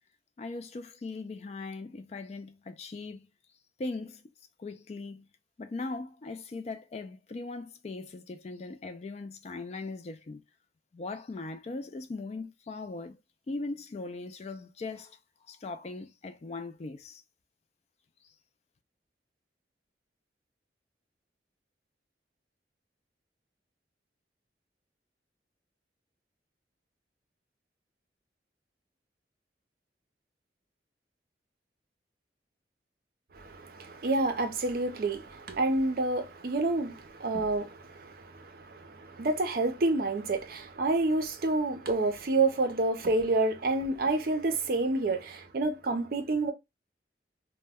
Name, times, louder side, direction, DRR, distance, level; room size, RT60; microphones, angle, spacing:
voice 1, 0.4-3.3 3.8-4.2 4.6-5.3 5.6-10.4 10.9-13.2 13.5-15.2 15.5-17.2, left 3 dB, 35° left, 0.3 m, -39 dB
voice 2, 33.3-46.5, right 2 dB, 55° right, 0.5 m, -29 dB
2.1 x 2.1 x 3.3 m
head